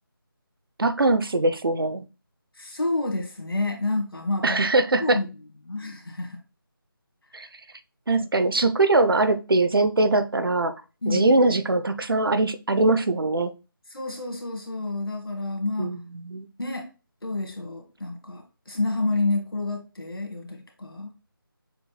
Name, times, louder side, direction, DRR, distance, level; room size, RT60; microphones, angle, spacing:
voice 1, 0.8-2.0 4.4-5.2 7.3-7.5 8.1-10.8 11.1-13.5 15.8-16.5, right 2 dB, 70° right, 0.6 m, -22 dB
voice 2, 2.5-4.6 5.0-5.3 5.6-6.4 11.0-11.3 13.9-16.0 16.6-16.9 17.2-21.1, left 2 dB, 80° left, 1.6 m, -29 dB
6.8 x 2.3 x 3.2 m
figure-of-eight pair, 165°, 12 cm